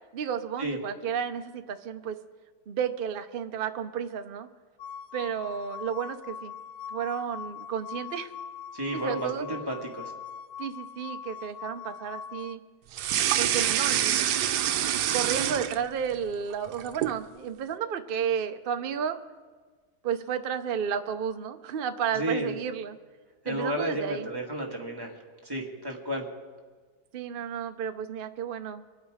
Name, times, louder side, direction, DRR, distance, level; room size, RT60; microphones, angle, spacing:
voice 1, 0.1-2.2 2.7-4.5 5.1-6.5 6.9-8.3 8.9-9.4 10.6-12.6 13.4-14.3 14.7-19.2 20.0-23.0 23.4-24.3 27.1-28.8, right 8 dB, 50° right, 8 dB, 0.7 m, -32 dB
sound 1, 4.8-12.6, left 8 dB, 75° left, 0.5 m, -41 dB
voice 2, 8.7-10.1 22.1-22.6 23.4-25.1 25.4-26.3, right 1 dB, 15° right, -1 dB, 1.8 m, -32 dB
sound 2, 12.9-16.1 16.5-17.2, right 10 dB, 90° right, 1.2 m, -26 dB
24.5 x 8.3 x 4.9 m, 1.5 s
omnidirectional pair, 1.7 m